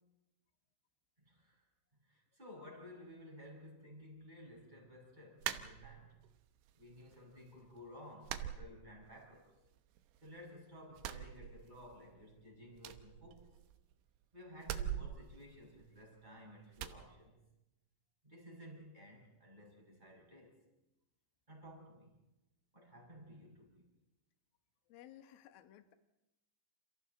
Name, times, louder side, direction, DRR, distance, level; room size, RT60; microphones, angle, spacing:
voice 1, 1.2-1.6 2.0-6.2 6.8-9.5 10.2-13.5 14.3-17.4 18.2-20.6 21.5-22.1 22.7-23.9, left 1 dB, 10° right, 5.4 m, -55 dB
sound 1, 5.4-6.3 6.7-7.4 7.6-7.8 8.2-9.4 9.7-10.5 10.9-12.1 12.3-12.4 12.8-13.9 14.6-16.3 16.8-17.0, right 11 dB, 75° right, 2.7 m, -44 dB
voice 2, 24.9-25.9, left 12 dB, 80° left, 2.1 m, -57 dB
29.5 x 29.0 x 4.1 m
omnidirectional pair, 5.9 m